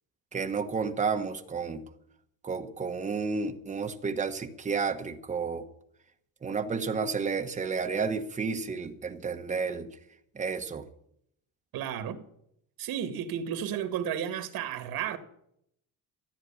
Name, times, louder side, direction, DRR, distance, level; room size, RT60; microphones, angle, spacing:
voice 1, 0.3-1.9 2.4-5.7 6.4-9.9 10.3-10.9, right 5 dB, 20° right, 1.1 m, -31 dB
voice 2, 11.7-12.2 12.8-15.2, right 9 dB, 75° right, 2.0 m, -33 dB
14.5 x 9.6 x 8.7 m
cardioid pair, 170°, 36 cm